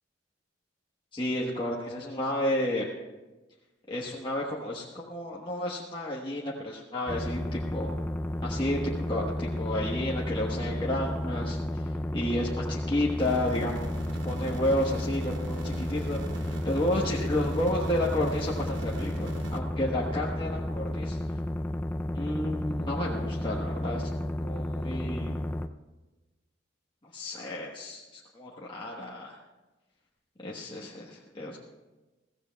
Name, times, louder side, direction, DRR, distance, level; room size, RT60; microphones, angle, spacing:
voice 1, 1.1-2.8 3.9-7.9 8.4-13.7 14.2-21.2 22.1-24.1 24.4-25.3 27.1-29.4 30.4-31.6, left 1 dB, 25° left, -4 dB, 1.2 m, -31 dB
sound 1, 7.1-25.7, left 1 dB, 10° left, 0.4 m, -32 dB
sound 2, 13.2-19.6, right 2 dB, 70° right, 0.9 m, -41 dB
22.0 x 16.0 x 2.3 m, 1.1 s
head